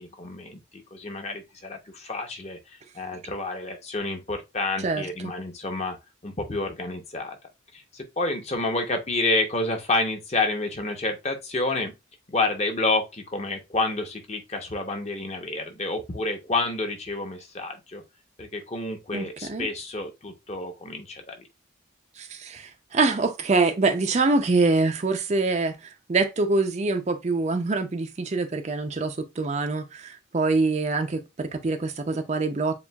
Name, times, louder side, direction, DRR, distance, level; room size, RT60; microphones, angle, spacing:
voice 1, 0.0-6.0 6.2-7.4 7.7-11.9 12.3-18.0 18.4-21.5, left 2 dB, 35° left, 0.8 m, -29 dB
voice 2, 4.8-5.3 19.1-19.7 22.2-32.8, right 3 dB, 35° right, 0.4 m, -25 dB
6.9 x 2.4 x 2.2 m
head